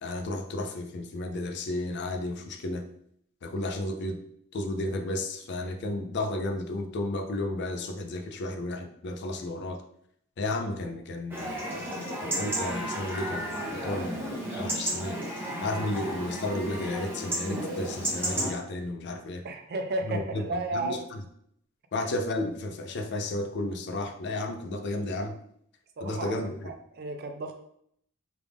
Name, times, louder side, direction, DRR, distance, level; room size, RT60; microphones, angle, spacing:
voice 1, 0.0-2.8 3.4-4.2 4.5-9.8 10.4-15.2 15.6-19.4 20.1-21.2 21.9-25.4 26.0-26.7, left 2 dB, 50° left, 7 dB, 0.4 m, -33 dB
Chatter / Livestock farm animals working animals / Chirp tweet, 11.3-18.5, right 1 dB, 10° right, 0.8 m, -33 dB
voice 2, 19.4-21.0 26.0-27.5, right 2 dB, 45° right, 6 dB, 0.4 m, -33 dB
3.3 x 2.5 x 3.4 m, 0.69 s
head